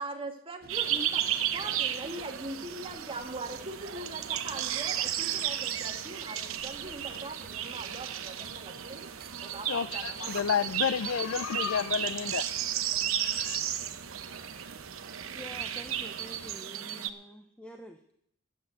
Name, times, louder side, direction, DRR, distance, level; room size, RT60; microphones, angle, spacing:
voice 1, 0.0-9.1 9.4-10.7, right 2 dB, 25° right, 1.8 m, -41 dB
sound 1, 0.6-16.6, right 5 dB, 50° right, 0.7 m, -51 dB
sound 2, 0.7-17.1, right 10 dB, 85° right, 0.9 m, -34 dB
voice 2, 9.7-12.4 13.2-13.6, left 7 dB, 75° left, 0.4 m, -30 dB
voice 3, 15.3-18.0, equal, 5° left, 0.8 m, -47 dB
12.5 x 8.4 x 8.2 m
head